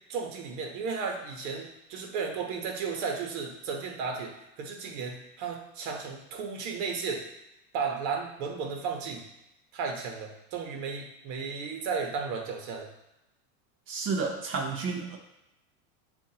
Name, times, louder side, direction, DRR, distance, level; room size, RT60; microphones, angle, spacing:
voice 1, 0.1-7.2 7.7-9.2 9.7-12.9, right 5 dB, 60° right, 2 dB, 1.1 m, -34 dB
voice 2, 13.9-15.2, right 4 dB, 30° right, 2 dB, 0.7 m, -31 dB
7.1 x 2.6 x 2.8 m, 0.88 s
supercardioid pair, 135°, 44 cm